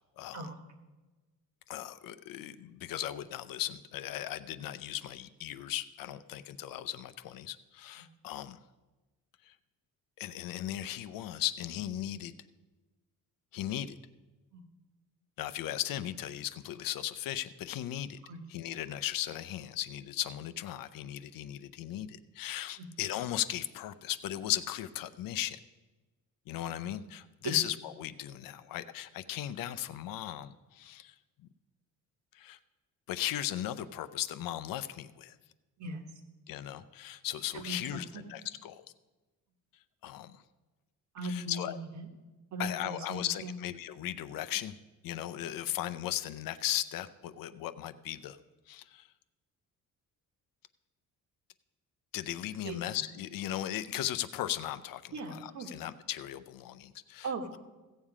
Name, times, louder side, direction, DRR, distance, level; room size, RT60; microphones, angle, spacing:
voice 1, 1.7-8.6 9.5-9.6 10.2-12.3 13.5-14.0 15.4-18.2 18.5-25.6 26.5-31.1 32.3-32.6 33.1-35.4 36.5-38.9 40.0-40.4 41.2-41.8 42.6-44.8 45.0-48.4 48.7-49.1 52.1-57.3, left 12 dB, 80° left, 13 dB, 0.6 m, -37 dB
voice 2, 37.5-38.3 41.1-42.1 42.5-43.6 52.6-52.9 55.1-55.7 57.2-57.6, right 2 dB, 55° right, 5 dB, 1.4 m, -39 dB
16.0 x 7.4 x 4.9 m, 1.2 s
cardioid pair, 150°, 34 cm